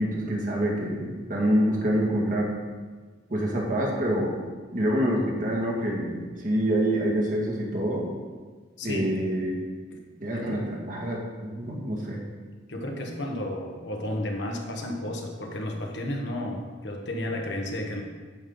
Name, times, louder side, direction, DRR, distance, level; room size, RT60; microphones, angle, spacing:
voice 1, 0.0-2.5 3.3-4.4 4.7-8.1 8.8-9.6 10.2-12.2, equal, 45° right, -3 dB, 2.0 m, -26 dB
voice 2, 8.8-9.3 9.9-10.0 10.3-10.7 12.7-18.0, left 1 dB, 70° left, 1 dB, 1.4 m, -32 dB
9.0 x 8.5 x 3.9 m, 1.4 s
head